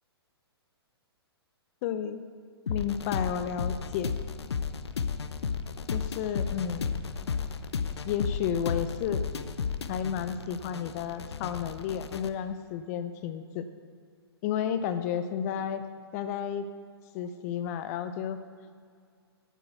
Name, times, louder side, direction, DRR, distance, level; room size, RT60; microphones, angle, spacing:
voice 1, 1.8-2.2 2.7-4.1 5.9-6.9 8.0-9.2 9.9-13.6 14.4-15.8 16.1-16.7 17.1-18.4, left 8 dB, 35° left, 10 dB, 0.6 m, -32 dB
sound 1, 2.7-12.3, left 6 dB, 80° left, 0.7 m, -33 dB
9.1 x 8.0 x 8.0 m, 2.1 s
hypercardioid pair, 125°, 14 cm